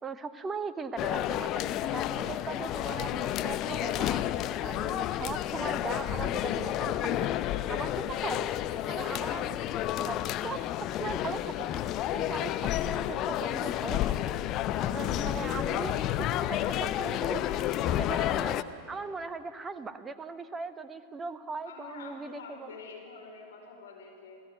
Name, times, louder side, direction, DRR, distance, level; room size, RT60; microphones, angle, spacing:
voice 1, 0.0-4.3 4.6-7.3 7.7-8.5 8.9-9.6 10.0-11.8 12.1-14.3 14.8-17.4 17.9-18.6 18.9-22.7, right 4 dB, 15° right, 11 dB, 1.2 m, -39 dB
sound 1, 1.0-18.6, left 12 dB, 35° left, 0.8 m, -31 dB
voice 2, 21.6-24.4, left 4 dB, 60° left, 1 dB, 5.1 m, -46 dB
29.5 x 16.5 x 8.3 m, 2.7 s
figure-of-eight pair, 90°, 0 cm